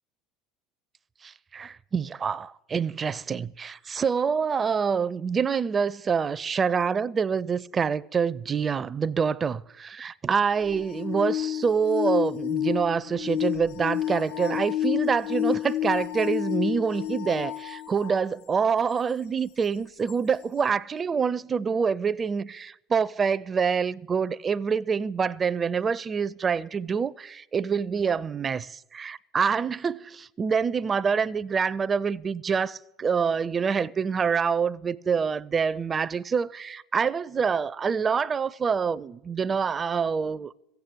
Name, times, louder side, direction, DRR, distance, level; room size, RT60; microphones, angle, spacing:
voice 1, 1.2-40.5, right 6 dB, 30° right, 0.4 m, -26 dB
sound 1, 10.6-18.3 19.0-19.1 20.1-20.2, left 12 dB, 75° left, 0.4 m, -29 dB
15.0 x 8.2 x 8.3 m
hypercardioid pair, 70°, 0 cm